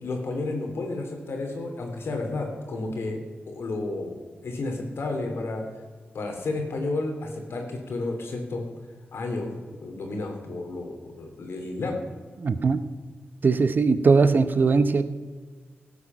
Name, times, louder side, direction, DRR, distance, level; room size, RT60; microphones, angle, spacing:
voice 1, 0.0-3.2 3.5-4.1 4.4-5.6 6.1-8.6 9.1-12.0, left 2 dB, 90° left, 3 dB, 3.0 m, -31 dB
voice 2, 12.4-12.8 13.4-15.1, right 4 dB, 50° right, 11 dB, 0.8 m, -20 dB
16.0 x 8.3 x 6.0 m, 1.5 s
wide cardioid pair, 115°, 4 cm